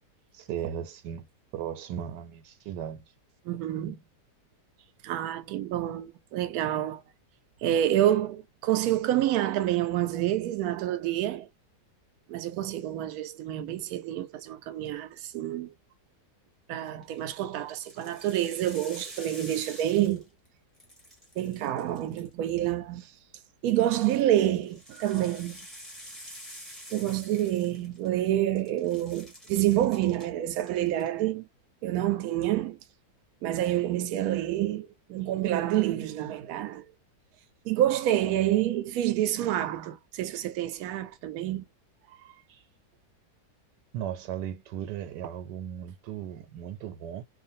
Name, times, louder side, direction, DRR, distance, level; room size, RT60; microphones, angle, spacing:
voice 1, 0.3-1.3 1.5-3.0 42.5-42.6 43.9-47.2, right 10 dB, 90° right, 1.2 m, -36 dB
voice 2, 3.4-4.0 5.0-7.0 7.6-11.5 12.3-15.7 16.7-20.2 21.4-23.1 23.6-25.7 26.9-31.5 31.8-32.8 33.4-36.8 37.6-41.6, right 12 dB, 70° right, 1.0 m, -28 dB
sound 1, 16.9-17.2 17.7-20.5 20.7-22.6 23.7-28.3 28.6-30.3 30.6-31.1, equal, ahead, 0.7 m, -48 dB
2.5 x 2.5 x 2.6 m
omnidirectional pair, 1.8 m